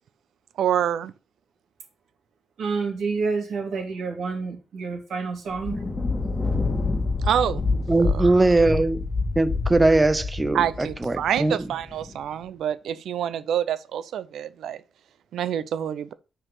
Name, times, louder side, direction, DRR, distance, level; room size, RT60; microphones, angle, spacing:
voice 1, 0.6-1.1 7.2-7.7 8.1-8.3 10.5-14.8 15.3-16.1, right 9 dB, 80° right, 0.6 m, -26 dB
voice 2, 2.6-5.8, right 4 dB, 60° right, 2.4 m, -28 dB
Thunder, 5.5-12.1, left 3 dB, 15° left, 2.1 m, -27 dB
voice 3, 7.9-9.1 9.4-11.7, right 2 dB, 15° right, 0.5 m, -21 dB
6.2 x 4.8 x 6.4 m
cardioid pair, 135°, 0 cm